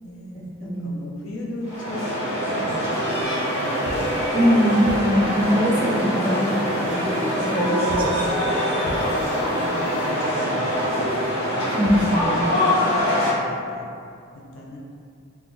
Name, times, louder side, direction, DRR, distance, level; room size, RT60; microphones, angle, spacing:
voice 1, 0.0-4.5 5.4-5.7 6.8-8.1 8.8-11.5 12.2-13.9 14.3-14.8, left 1 dB, 80° left, -2 dB, 0.4 m, -37 dB
voice 2, 0.6-1.0 4.3-6.5 6.9-7.0 7.5-8.3 11.7-12.4, equal, 25° right, -5 dB, 0.4 m, -21 dB
sound 1, 1.6-13.3, equal, 65° left, 0.9 m, -24 dB
sound 2, 1.7-12.3, equal, 85° right, 0.4 m, -37 dB
sound 3, 3.2-10.6, equal, 35° left, 0.6 m, -38 dB
2.1 x 2.0 x 3.6 m, 2.3 s
head